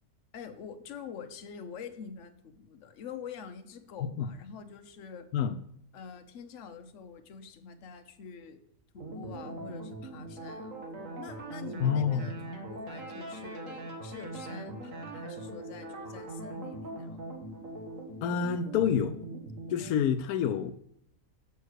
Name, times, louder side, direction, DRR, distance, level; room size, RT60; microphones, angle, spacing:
voice 1, 0.3-5.3 5.9-8.6 8.9-10.8 11.2-17.2, left 6 dB, 60° left, 8 dB, 1.1 m, -46 dB
sound 1, 9.0-19.9, right 2 dB, 65° right, 1.7 m, -41 dB
voice 2, 11.8-12.3 18.2-19.2 19.7-20.7, left 8 dB, 85° left, 10 dB, 1.1 m, -27 dB
6.9 x 5.7 x 6.4 m, 0.72 s
omnidirectional pair, 1.5 m